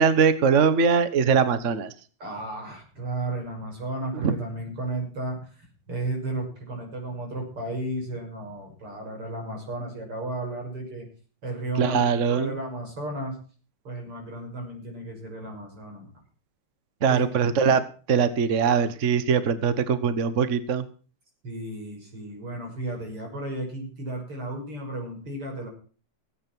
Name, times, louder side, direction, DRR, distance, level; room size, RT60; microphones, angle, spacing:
voice 1, 0.0-1.9 4.2-4.3 11.8-12.5 17.0-17.8 18.1-20.8, right 6 dB, 45° right, 13 dB, 1.2 m, -21 dB
voice 2, 2.2-11.1 11.4-12.0 12.3-13.4 13.9-16.1 17.1-17.2 21.4-25.7, right 1 dB, 80° right, 1 dB, 7.0 m, -34 dB
17.0 x 8.7 x 6.1 m, 0.39 s
omnidirectional pair, 2.4 m